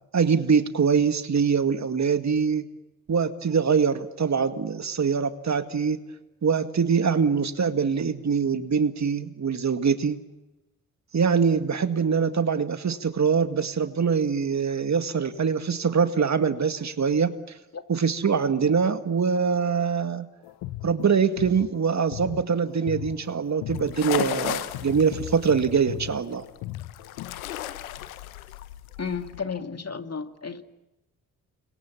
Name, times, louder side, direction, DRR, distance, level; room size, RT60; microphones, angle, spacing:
voice 1, 0.1-2.7 3.1-6.0 6.4-10.2 11.1-17.4 17.9-20.3 20.8-26.4, right 6 dB, 40° right, 9 dB, 2.0 m, -23 dB
sound 1, 20.4-27.4, left 15 dB, 70° left, 1.3 m, -38 dB
sound 2, 23.7-29.4, left 13 dB, 90° left, 1.0 m, -35 dB
voice 2, 29.0-30.6, left 5 dB, 35° left, 7 dB, 2.5 m, -33 dB
30.0 x 26.0 x 7.3 m, 0.99 s
hypercardioid pair, 40°, 41 cm